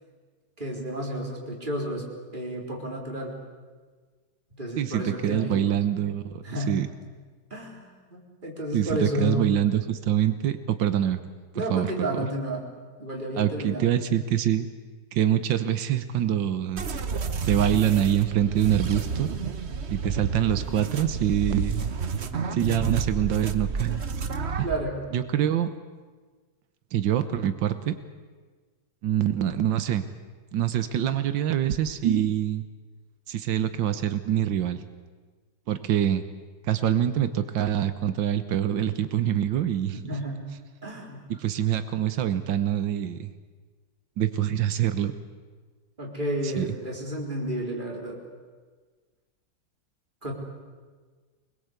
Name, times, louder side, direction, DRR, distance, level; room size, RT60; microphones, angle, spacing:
voice 1, 0.6-2.0 2.3-3.3 4.6-5.7 6.4-6.7 7.5-9.5 11.5-12.6 13.0-13.9 23.9-25.0 40.1-40.4 40.8-41.2 46.0-48.2 50.2-50.3, equal, 25° right, -1 dB, 4.3 m, -32 dB
voice 2, 4.8-6.9 8.7-11.2 11.7-11.9 13.4-14.7 15.1-17.0 17.5-19.3 19.9-21.8 22.5-24.0 24.6-24.7 25.1-25.7 26.9-28.0 29.0-30.0 30.5-32.6 33.3-34.8 35.7-36.2 36.7-40.1 41.4-43.3 44.2-45.1 46.6-46.7, right 10 dB, 90° right, 10 dB, 1.7 m, -25 dB
sound 1, 16.8-24.8, right 5 dB, 40° right, 1.2 m, -31 dB
24.5 x 21.0 x 8.2 m, 1.4 s
omnidirectional pair, 2.0 m